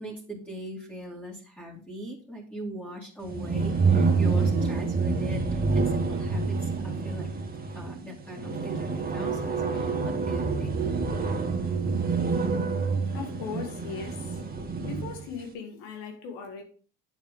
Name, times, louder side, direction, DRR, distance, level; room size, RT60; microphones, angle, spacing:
voice 1, 0.0-7.3 7.7-10.8, right 1 dB, 5° left, -4 dB, 2.6 m, -41 dB
sound 1, 3.2-15.2, right 4 dB, 25° right, 1.8 m, -27 dB
voice 2, 13.1-14.4 14.8-16.6, left 5 dB, 90° left, 3 dB, 2.1 m, -38 dB
8.2 x 6.4 x 3.8 m, 0.41 s
supercardioid pair, 90°, 37 cm